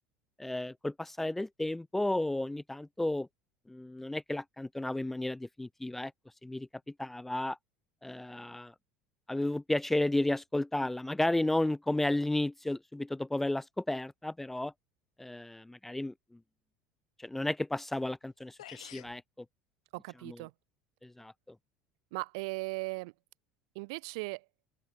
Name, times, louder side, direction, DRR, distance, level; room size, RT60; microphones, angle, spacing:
voice 1, 0.4-3.3 3.7-6.1 6.4-6.7 7.0-7.6 8.0-8.7 9.3-14.7 15.2-16.1 17.2-19.5 20.3-20.4 21.0-21.6, left 1 dB, 5° left, 0.3 m, -33 dB
sound 1, 18.2-18.3 18.6-19.2, left 14 dB, 70° left, 0.5 m, -48 dB
voice 2, 19.9-20.5 22.1-23.1 23.7-24.5, right 27 dB, 60° right, 0.6 m, -38 dB
open air
figure-of-eight pair, 70°, 3 cm